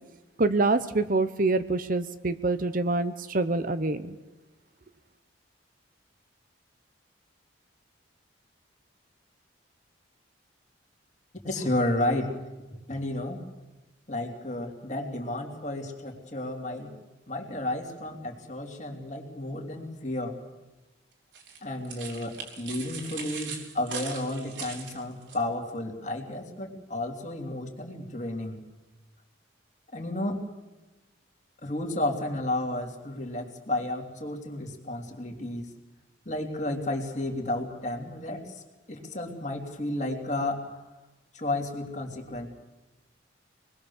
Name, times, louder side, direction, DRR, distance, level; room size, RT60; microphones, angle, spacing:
voice 1, 0.4-4.2, right 3 dB, 45° right, 12 dB, 0.8 m, -26 dB
voice 2, 11.4-12.3 12.9-13.4 14.1-16.9 17.3-20.4 21.6-28.6 29.9-30.4 31.6-35.7 36.2-38.6 38.9-40.8 41.3-42.5, left 1 dB, 35° left, 2 dB, 3.1 m, -32 dB
sound 1, 21.3-25.4, right 5 dB, 65° right, 3.6 m, -40 dB
25.5 x 20.5 x 7.2 m, 1.1 s
head